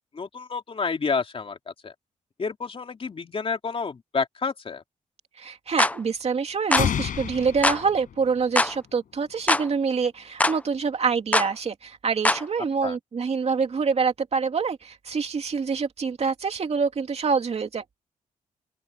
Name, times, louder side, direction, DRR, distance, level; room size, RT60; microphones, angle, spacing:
voice 1, 0.1-1.9 2.4-4.8 12.8-13.0, left 5 dB, 40° left, 3.1 m, -29 dB
voice 2, 5.4-17.8, right 5 dB, 50° right, 2.7 m, -26 dB
sound 1, 5.8-6.0 6.7-6.9 7.6-7.8 8.5-8.7 9.5-9.7 10.4-10.6 11.3-11.5 12.2-12.4, left 1 dB, 10° left, 0.9 m, -21 dB
sound 2, 6.8-8.7, left 8 dB, 75° left, 5.7 m, -29 dB
open air
cardioid pair, 100°, 14 cm